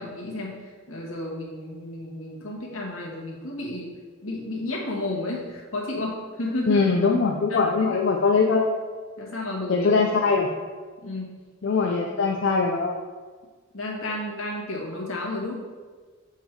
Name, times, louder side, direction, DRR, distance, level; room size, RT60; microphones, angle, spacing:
voice 1, 0.0-3.9 4.2-6.8 7.5-8.0 9.2-9.9 10.4-10.5 11.0-11.3 11.8-11.9 13.7-15.6, left 1 dB, 80° left, -3 dB, 1.6 m, -32 dB
voice 2, 6.7-8.7 9.7-10.5 11.6-12.9, left 4 dB, 55° left, 1 dB, 0.5 m, -21 dB
7.2 x 3.7 x 4.6 m, 1.5 s
head